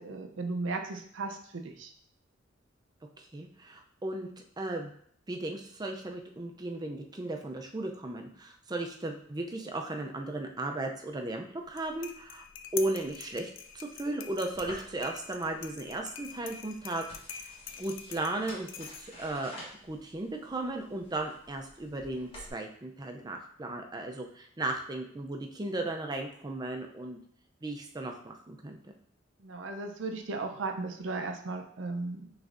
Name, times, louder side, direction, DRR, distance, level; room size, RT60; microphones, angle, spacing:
voice 1, 0.0-1.9 29.4-32.3, right 3 dB, 80° right, 4 dB, 0.6 m, -36 dB
voice 2, 3.2-4.3 4.6-4.9 5.3-12.4 12.7-19.5 19.9-27.2 27.6-28.8, right 2 dB, 20° right, 3 dB, 0.5 m, -36 dB
sound 1, 11.6-19.3, left 7 dB, 80° left, 0.4 m, -45 dB
sound 2, 14.5-22.5, equal, 30° left, 1.3 m, -51 dB
6.0 x 3.2 x 2.6 m, 0.63 s
head